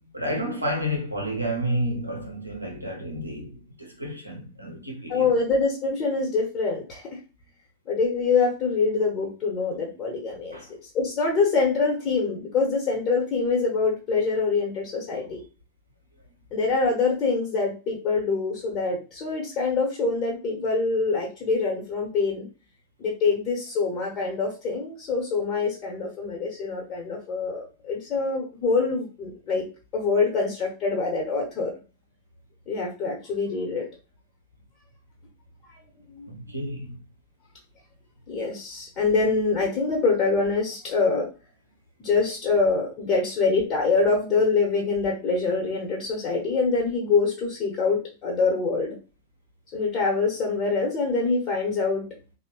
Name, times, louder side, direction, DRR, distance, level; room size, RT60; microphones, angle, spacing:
voice 1, 0.0-5.3 10.5-10.7 15.2-15.3 36.3-37.0, equal, 85° right, 0.6 m, -31 dB
voice 2, 5.1-7.1 7.9-15.4 16.5-22.5 23.0-31.7 32.7-33.9 36.1-36.6 38.3-41.3 42.0-49.0 49.7-52.1, left 4 dB, 35° left, 0.9 m, -25 dB
3.1 x 2.1 x 2.9 m
figure-of-eight pair, 90°, 0 cm